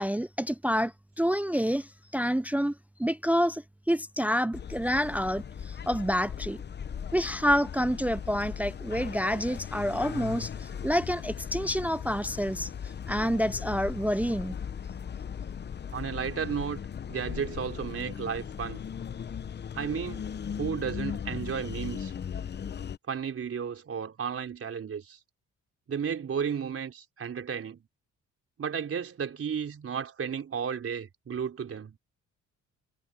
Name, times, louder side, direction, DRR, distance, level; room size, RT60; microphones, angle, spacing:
voice 1, 0.0-2.7 3.0-6.6 7.1-12.7 13.1-14.5, equal, 5° right, 0.6 m, -28 dB
sound 1, 4.5-23.0, left 7 dB, 35° left, 0.7 m, -38 dB
voice 2, 15.9-16.8 17.1-18.8 19.7-20.3 20.6-22.1 23.1-25.2 25.9-27.8 28.6-32.0, right 7 dB, 50° right, 4.4 m, -33 dB
cardioid pair, 90°, 30 cm